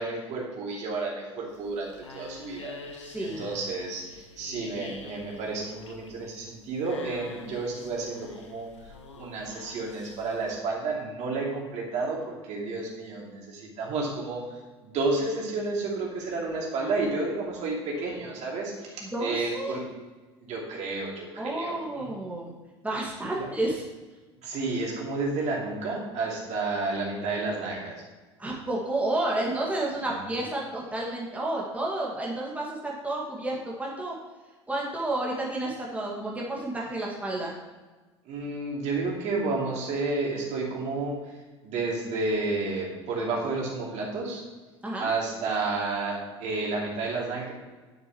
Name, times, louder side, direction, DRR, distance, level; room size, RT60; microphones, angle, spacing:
voice 1, 0.0-2.7 3.2-19.8 20.4-22.0 23.4-23.5 24.4-28.0 30.0-30.4 38.2-41.4 41.6-44.4 45.0-47.5, right 3 dB, 50° right, -3 dB, 2.7 m, -31 dB
sound 1, 1.5-10.6, left 3 dB, 90° left, 0.9 m, -47 dB
voice 2, 3.0-3.4 19.0-19.8 21.4-22.5 22.8-23.8 28.4-34.1 34.7-37.5 44.8-45.1, right 2 dB, 10° right, -4 dB, 2.0 m, -31 dB
10.5 x 6.8 x 3.1 m, 1.3 s
hypercardioid pair, 70°, 15 cm